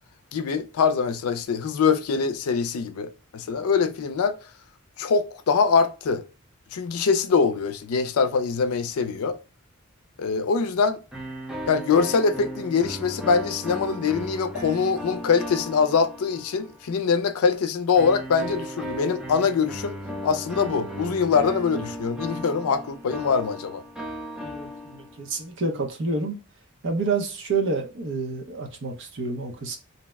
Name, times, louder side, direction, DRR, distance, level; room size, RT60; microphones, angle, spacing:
voice 1, 0.3-4.3 5.0-6.2 6.7-9.4 10.2-11.0 11.7-20.0 20.2-23.8, left 5 dB, 85° left, 0.4 m, -23 dB
sound 1, 11.1-16.9 18.0-25.4, equal, 5° right, 0.4 m, -36 dB
voice 2, 24.4-26.4 26.8-29.8, right 3 dB, 60° right, 0.7 m, -28 dB
2.7 x 2.1 x 3.3 m
head